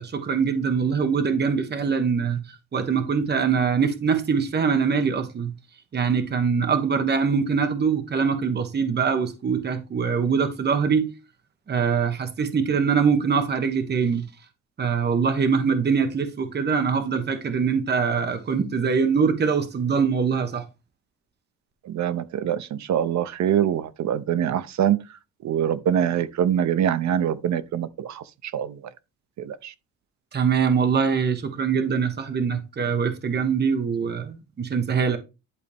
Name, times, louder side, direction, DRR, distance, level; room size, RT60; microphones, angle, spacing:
voice 1, 0.0-2.4 2.7-5.5 5.9-11.1 11.7-14.3 14.8-20.6 30.3-35.2, right 6 dB, 35° right, 1.1 m, -23 dB
voice 2, 21.8-25.0 25.4-28.8 29.4-29.7, right 9 dB, 65° right, 0.7 m, -24 dB
11.0 x 4.1 x 3.5 m
wide cardioid pair, 155°, 31 cm